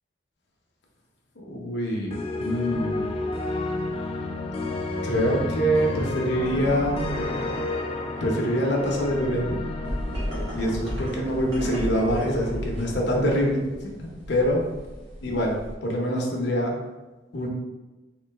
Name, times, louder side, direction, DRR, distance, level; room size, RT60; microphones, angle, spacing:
voice 1, 1.4-3.1 5.0-7.1 8.2-9.6 10.5-14.6 15.2-15.6 15.8-16.8 17.3-17.5, equal, 60° left, -1 dB, 0.7 m, -25 dB
sound 1, 2.1-12.2, left 2 dB, 30° left, 0.3 m, -31 dB
sound 2, 9.8-15.7, equal, 80° right, 1.2 m, -34 dB
3.8 x 2.7 x 3.3 m, 1.1 s
head